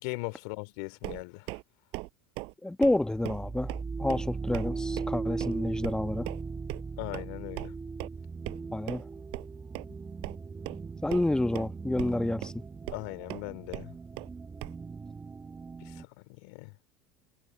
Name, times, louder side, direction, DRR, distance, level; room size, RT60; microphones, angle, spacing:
voice 1, 0.0-1.6 7.0-7.7 12.9-13.9 15.8-16.7, left 29 dB, 65° left, 2.7 m, -39 dB
sound 1, 1.0-1.6 1.9-2.1 2.4-2.5 2.8-3.0 3.3-3.4 3.7-3.8 4.1-4.2 4.5-4.7 5.0-5.1 5.4-5.5 5.8-5.9 6.3-6.4 6.7-6.8 7.1-7.3 7.6-7.7 8.0-8.1 8.5-8.6 8.9-9.0 9.3-9.5 9.7-9.8 10.2-10.4 10.7-10.8 11.1-11.7 12.0-12.2 12.4-12.5 12.9-13.0 13.3-13.4 13.7-13.9 14.2-14.3 14.6-14.7, right 26 dB, 60° right, 7.0 m, -38 dB
voice 2, 2.6-3.7 4.0-6.3 8.7-9.0 11.0-12.6, left 1 dB, 5° left, 1.3 m, -29 dB
sound 2, 2.9-16.0, right 4 dB, 20° right, 1.6 m, -38 dB
hypercardioid pair, 80°, 10 cm